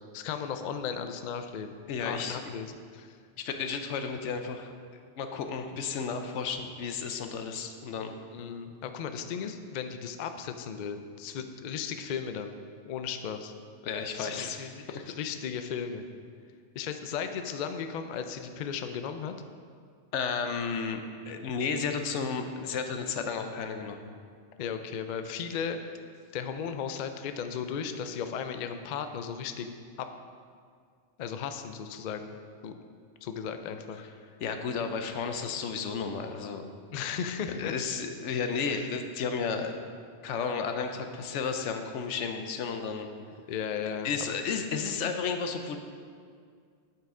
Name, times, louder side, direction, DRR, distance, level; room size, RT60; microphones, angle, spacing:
voice 1, 0.1-3.2 8.3-12.5 12.9-13.5 14.1-16.0 16.7-19.3 24.6-25.8 26.3-29.7 31.2-32.4 32.6-32.8 33.2-34.0 36.9-37.8 38.7-38.9 43.5-44.4, left 7 dB, 60° left, 8 dB, 0.5 m, -36 dB
voice 2, 1.9-2.4 3.4-4.7 5.2-8.1 13.8-14.6 14.9-15.1 20.1-24.0 34.4-36.7 37.5-39.8 40.2-43.1 44.0-45.8, left 5 dB, 90° left, 6 dB, 1.0 m, -33 dB
9.0 x 5.7 x 3.7 m, 2.1 s
omnidirectional pair, 1.2 m